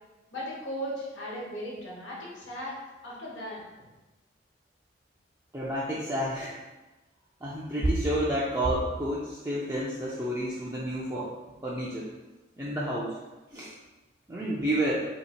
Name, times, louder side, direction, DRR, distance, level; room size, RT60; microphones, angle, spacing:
voice 1, 0.3-2.8 3.0-3.6, equal, 75° left, -5 dB, 1.3 m, -37 dB
voice 2, 5.5-6.6 7.4-11.3 11.6-12.1 12.6-13.1 13.5-13.7 14.3-15.0, right 1 dB, 15° right, -8 dB, 0.4 m, -29 dB
3.0 x 2.9 x 4.2 m, 1.1 s
head